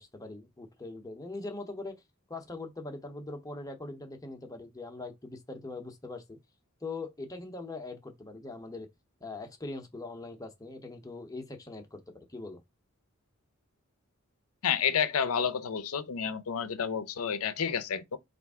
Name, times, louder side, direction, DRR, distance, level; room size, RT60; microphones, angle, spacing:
voice 1, 0.0-2.0 2.3-6.4 6.8-8.9 9.2-12.6, left 2 dB, 15° left, 0.7 m, -41 dB
voice 2, 14.6-18.2, left 7 dB, 75° left, 0.5 m, -30 dB
4.5 x 2.5 x 3.5 m
head